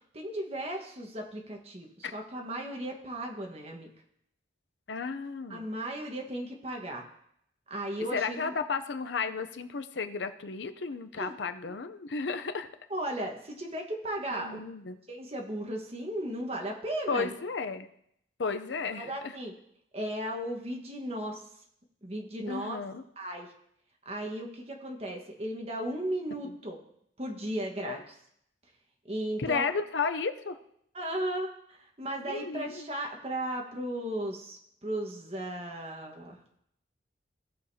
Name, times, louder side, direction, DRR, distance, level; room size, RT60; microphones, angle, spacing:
voice 1, 0.1-3.9 5.5-7.0 7.7-8.5 11.2-11.3 11.7-11.8 12.9-14.6 15.1-17.3 19.0-19.5 19.9-21.4 22.0-22.8 23.2-23.5 24.0-26.8 27.2-28.1 29.0-29.6 30.9-36.4, right 1 dB, 35° right, 1 dB, 1.4 m, -36 dB
voice 2, 4.9-5.7 8.1-12.7 14.3-15.0 17.1-17.9 18.4-19.4 22.5-23.0 26.4-26.5 27.8-28.0 29.4-30.6 32.2-32.9, left 5 dB, 90° left, 9 dB, 0.6 m, -33 dB
17.0 x 6.6 x 2.8 m, 0.74 s
head